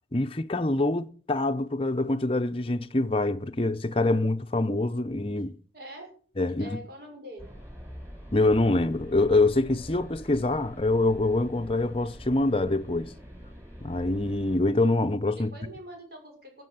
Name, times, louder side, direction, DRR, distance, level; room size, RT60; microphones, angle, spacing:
voice 1, 0.0-5.6 6.4-6.8 8.3-13.1 13.8-15.5, left 2 dB, 30° left, 0.8 m, -25 dB
voice 2, 5.7-6.1 6.6-7.5 15.4-16.6, equal, 55° right, 5.9 m, -44 dB
sound 1, 7.4-14.6, equal, 10° right, 5.6 m, -45 dB
13.5 x 7.6 x 7.8 m
head